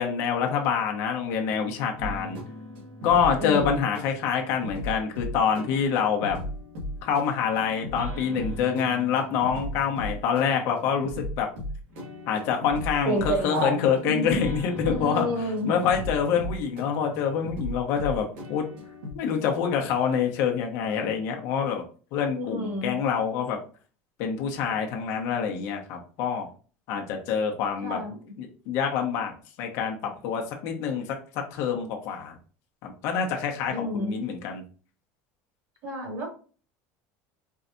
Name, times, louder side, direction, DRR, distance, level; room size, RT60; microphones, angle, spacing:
voice 1, 0.0-2.4 3.0-6.4 7.0-11.5 12.3-15.3 15.6-18.7 19.1-21.8 22.1-23.6 24.2-26.5 26.9-28.0 28.4-31.0 31.5-32.4 32.8-34.6, left 7 dB, 55° left, 2 dB, 1.0 m, -26 dB
sound 1, 2.0-19.1, left 1 dB, 80° right, 2.0 m, -37 dB
voice 2, 3.4-3.9 13.1-14.4 14.8-15.7 22.3-23.0 27.8-28.2 33.7-34.1 35.8-36.3, equal, 50° right, 0 dB, 2.2 m, -29 dB
4.7 x 3.3 x 2.7 m, 0.38 s
cardioid pair, 170°, 6 cm